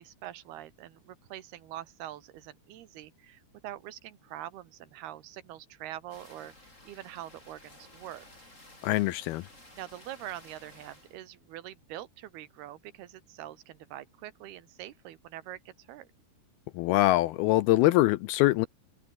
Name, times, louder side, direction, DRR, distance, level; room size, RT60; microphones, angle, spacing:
voice 1, 0.0-6.5 6.9-8.2 9.7-16.1, right 13 dB, 70° right, 3.1 m, -44 dB
sound 1, 6.1-11.2, left 1 dB, 15° left, 7.5 m, -54 dB
voice 2, 8.8-9.5 16.7-18.7, left 17 dB, 80° left, 2.4 m, -23 dB
open air
omnidirectional pair, 4.9 m